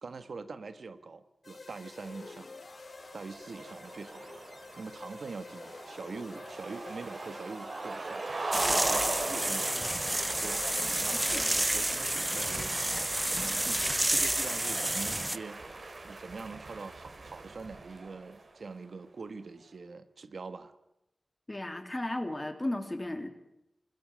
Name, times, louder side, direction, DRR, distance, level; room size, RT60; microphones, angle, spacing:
voice 1, 0.0-2.5 3.1-4.3 4.8-9.8 10.4-10.7 11.0-12.9 13.3-15.6 16.0-20.7, right 4 dB, 85° right, 11 dB, 1.5 m, -44 dB
sound 1, 1.4-13.2, left 3 dB, 65° left, 2.1 m, -49 dB
sound 2, 2.9-18.6, right 3 dB, 60° right, 3.8 m, -40 dB
sound 3, 8.5-15.4, right 1 dB, 20° right, 0.8 m, -30 dB
voice 2, 21.5-23.3, left 1 dB, 25° left, 7 dB, 3.1 m, -34 dB
21.0 x 21.0 x 9.9 m, 0.83 s
wide cardioid pair, 70°, 0 cm